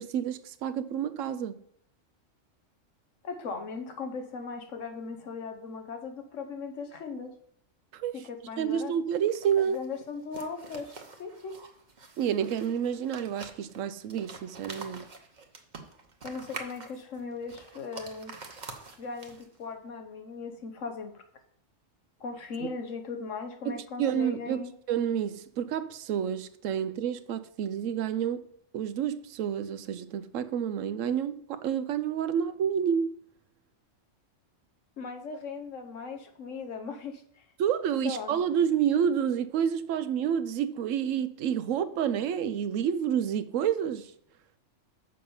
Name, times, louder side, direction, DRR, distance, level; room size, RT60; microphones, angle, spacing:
voice 1, 0.0-1.5 7.9-8.1 8.6-9.8 12.2-15.0 22.6-22.7 23.6-28.5 28.7-33.2 37.6-44.1, right 8 dB, 80° right, 1.0 m, -29 dB
voice 2, 3.2-7.3 8.1-8.9 9.6-10.9 11.2-11.6 16.2-18.3 19.0-21.2 22.2-24.7 35.0-37.4 38.0-38.4, left 4 dB, 75° left, 1.4 m, -38 dB
sound 1, 9.1-19.6, right 4 dB, 40° right, 1.0 m, -46 dB
6.5 x 5.4 x 7.1 m
omnidirectional pair, 1.3 m